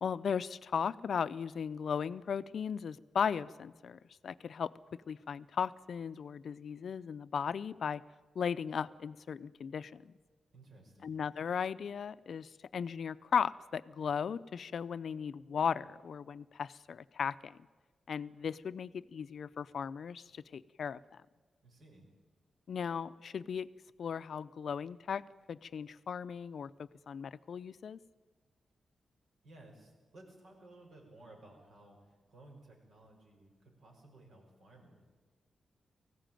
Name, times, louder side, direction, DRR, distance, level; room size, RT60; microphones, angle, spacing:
voice 1, 0.0-8.0 8.4-10.1 11.0-17.6 18.1-21.2 22.7-23.7 24.0-25.2 25.5-28.0, left 7 dB, 65° left, 15 dB, 0.5 m, -37 dB
voice 2, 10.5-11.2 21.6-22.1 29.4-35.0, right 2 dB, 70° right, 1 dB, 6.0 m, -57 dB
19.0 x 15.5 x 9.1 m, 1.4 s
wide cardioid pair, 110°, 0 cm